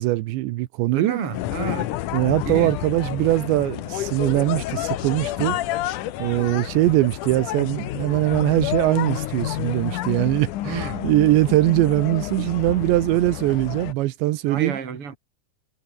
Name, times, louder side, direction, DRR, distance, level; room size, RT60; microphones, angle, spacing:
voice 1, 0.0-1.2 2.1-5.6 6.2-14.8, right 17 dB, 85° right, 3.2 m, -21 dB
voice 2, 0.9-1.9 2.4-2.7 10.6-11.1 14.5-15.2, right 6 dB, 35° right, 3.8 m, -30 dB
sound 1, 1.3-13.9, left 14 dB, 75° left, 1.8 m, -29 dB
omnidirectional pair, 5.1 m